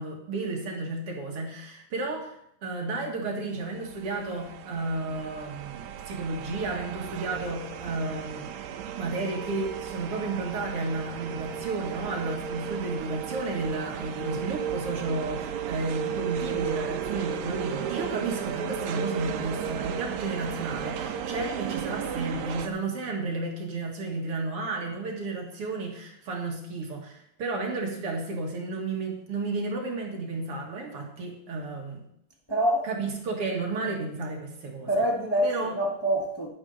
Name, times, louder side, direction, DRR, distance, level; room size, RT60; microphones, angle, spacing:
voice 1, 0.0-2.3 2.6-8.5 9.0-32.0 32.8-34.9 35.4-35.8, right 3 dB, 50° right, 2.2 m, -32 dB
sound 1, 3.7-22.7, right 8 dB, 70° right, 1.9 m, -34 dB
voice 2, 32.5-32.9 34.9-36.5, right 1 dB, 35° left, 0.3 m, -26 dB
11.0 x 9.9 x 4.0 m
omnidirectional pair, 4.1 m